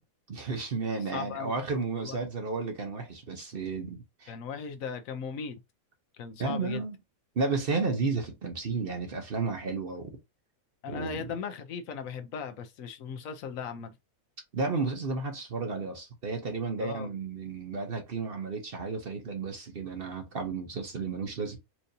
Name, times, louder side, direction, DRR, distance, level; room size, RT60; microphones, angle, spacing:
voice 1, 0.3-4.3 6.4-7.0 7.4-10.1 10.9-11.3 14.5-21.6, right 4 dB, 45° right, 0.9 m, -32 dB
voice 2, 1.1-1.6 1.9-2.2 4.3-5.6 6.2-6.9 10.8-13.9 16.8-17.1, left 6 dB, 70° left, 1.1 m, -38 dB
4.5 x 2.7 x 2.6 m
omnidirectional pair, 1.5 m